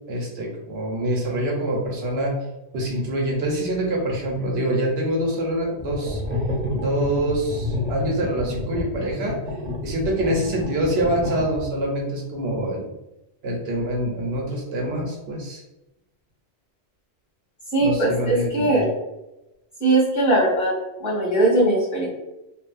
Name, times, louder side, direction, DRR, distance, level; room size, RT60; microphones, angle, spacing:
voice 1, 0.1-2.3 2.7-6.2 6.7-9.3 9.8-12.9 13.4-15.6 17.8-18.8, right 1 dB, 75° right, -1 dB, 1.0 m, -25 dB
sound 1, 5.8-11.9, left 2 dB, 50° right, 0.8 m, -29 dB
voice 2, 17.7-18.9 19.8-20.7 21.0-22.0, right 2 dB, 40° left, -8 dB, 1.3 m, -20 dB
3.1 x 2.1 x 2.4 m, 0.94 s
omnidirectional pair, 1.1 m